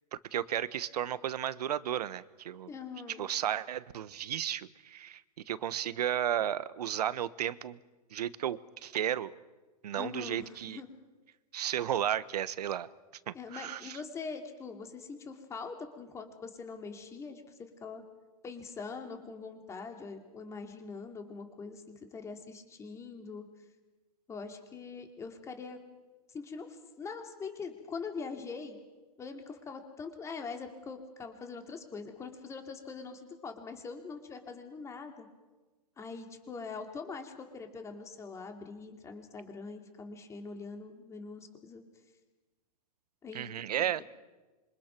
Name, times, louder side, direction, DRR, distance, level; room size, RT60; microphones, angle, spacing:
voice 1, 0.3-2.7 3.2-7.8 8.1-9.3 9.8-10.8 11.5-12.9 13.3-14.0 43.3-44.0, right 10 dB, 75° right, 16 dB, 1.2 m, -33 dB
voice 2, 2.7-3.3 10.0-10.9 13.3-18.0 18.4-23.5 24.3-25.8 26.3-28.8 29.2-35.3 36.0-41.8 43.2-43.5 43.8-44.0, left 4 dB, 15° left, 5 dB, 2.9 m, -43 dB
26.5 x 24.5 x 6.1 m, 1.2 s
hypercardioid pair, 150°, 20 cm